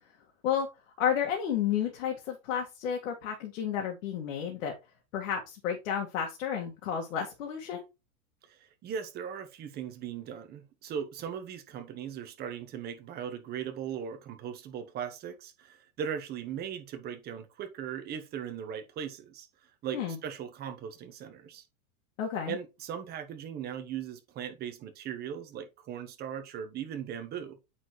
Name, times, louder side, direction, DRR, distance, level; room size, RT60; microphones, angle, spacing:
voice 1, 1.0-4.7 5.1-7.8 19.9-20.2 22.2-22.6, left 8 dB, 65° left, 2.0 m, -31 dB
voice 2, 8.5-21.6 22.5-27.7, right 8 dB, 20° right, 0.9 m, -39 dB
8.8 x 4.3 x 3.1 m
supercardioid pair, 155°, 43 cm